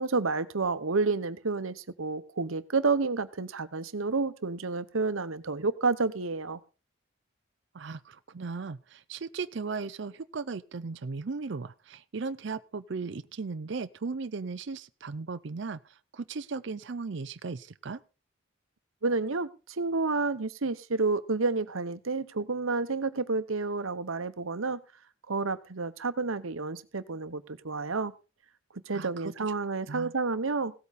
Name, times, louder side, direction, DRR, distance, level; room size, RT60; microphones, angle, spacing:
voice 1, 0.0-6.6 19.0-24.8 25.3-28.1 28.9-30.7, right 3 dB, 80° right, 13 dB, 1.0 m, -30 dB
voice 2, 7.7-18.0 28.9-29.3 29.9-30.1, right 4 dB, 60° right, 12 dB, 0.5 m, -37 dB
17.0 x 8.4 x 4.2 m, 0.32 s
head